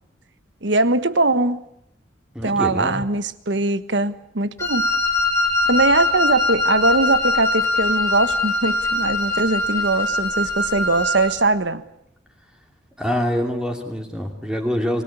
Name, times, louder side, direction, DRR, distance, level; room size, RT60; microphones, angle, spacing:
voice 1, 0.6-1.6 2.4-4.9 5.7-11.8, right 2 dB, 70° right, 13 dB, 1.4 m, -21 dB
voice 2, 2.3-2.9 13.0-15.0, equal, 5° right, 3 dB, 2.6 m, -25 dB
Wind instrument woodwind instrument, 4.6-11.3, left 2 dB, 15° left, 4.3 m, -22 dB
27.5 x 18.0 x 9.8 m, 0.76 s
head